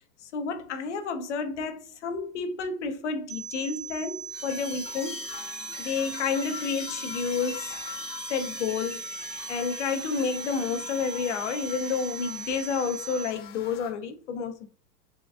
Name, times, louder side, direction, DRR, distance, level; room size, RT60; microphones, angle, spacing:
voice 1, 0.2-5.2 5.8-7.9 8.3-9.0 9.5-14.7, left 5 dB, 50° left, 0.4 m, -30 dB
sound 1, 3.3-13.3, right 5 dB, 55° right, 0.5 m, -39 dB
sound 2, 4.3-13.9, left 8 dB, 80° left, 0.7 m, -42 dB
3.5 x 2.1 x 2.3 m
supercardioid pair, 170°, 49 cm